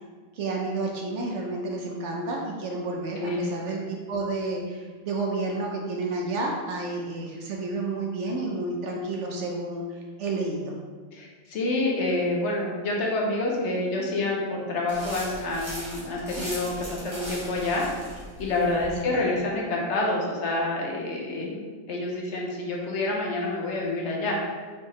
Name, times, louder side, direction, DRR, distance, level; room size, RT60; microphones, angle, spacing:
voice 1, 0.3-10.7 19.0-19.2, right 2 dB, 65° right, 0 dB, 0.8 m, -30 dB
voice 2, 11.1-17.8 18.4-21.6 21.9-24.5, left 2 dB, 60° left, -2 dB, 0.9 m, -28 dB
sound 1, 14.9-19.0, equal, 20° right, 1.2 m, -39 dB
4.4 x 3.5 x 3.0 m, 1.5 s
omnidirectional pair, 1.5 m